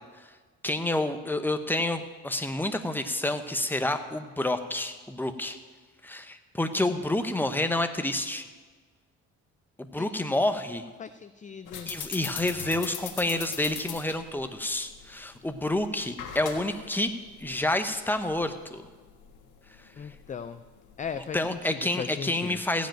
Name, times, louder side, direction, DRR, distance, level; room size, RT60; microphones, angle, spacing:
voice 1, 0.6-5.6 6.0-8.5 9.8-10.8 11.9-17.1 17.4-18.9 21.3-22.9, left 1 dB, 5° left, 8 dB, 0.9 m, -29 dB
voice 2, 11.0-11.9 20.0-20.6 21.0-22.6, left 6 dB, 25° left, 11 dB, 0.4 m, -37 dB
sound 1, 11.7-21.7, left 8 dB, 90° left, 1.5 m, -42 dB
15.5 x 5.2 x 9.0 m, 1.4 s
cardioid pair, 90°, 30 cm